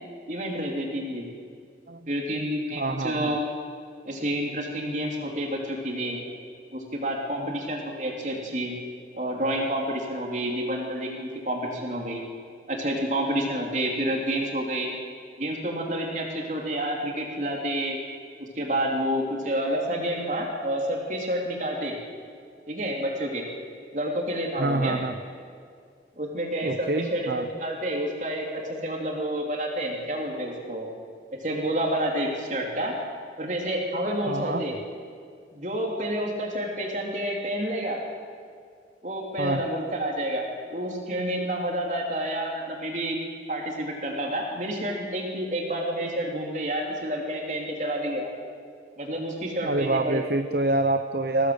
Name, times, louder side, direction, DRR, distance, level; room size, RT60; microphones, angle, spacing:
voice 1, 0.3-1.3 2.1-3.4 4.0-6.2 6.7-8.7 9.1-12.3 12.7-14.9 15.4-18.0 18.4-22.0 22.7-23.4 23.9-25.0 26.2-30.9 31.4-32.9 33.4-34.8 35.5-38.0 39.0-40.4 40.7-43.2 43.5-48.3 49.0-50.2, right 1 dB, 45° right, 0 dB, 3.7 m, -29 dB
voice 2, 2.8-3.4 24.6-25.2 26.6-27.5 34.3-34.6 39.4-39.6 49.6-51.5, right 2 dB, 60° right, 8 dB, 0.8 m, -26 dB
22.0 x 17.0 x 8.2 m, 2.2 s
head